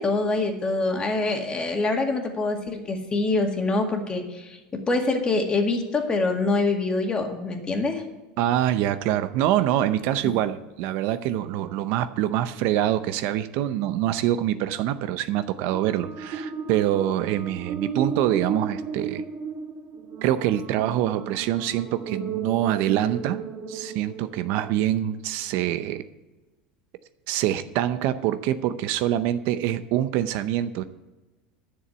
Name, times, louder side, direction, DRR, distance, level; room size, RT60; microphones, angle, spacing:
voice 1, 0.0-4.6 4.9-8.0 10.2-10.3, left 3 dB, 20° left, 3 dB, 2.1 m, -25 dB
voice 2, 8.4-19.2 20.2-23.4 23.7-26.0 27.3-30.8, right 12 dB, 60° right, 12 dB, 0.7 m, -25 dB
sound 1, 15.6-25.0, right 6 dB, 45° right, 2.7 m, -35 dB
10.5 x 6.8 x 8.0 m, 1.1 s
supercardioid pair, 115°, 4 cm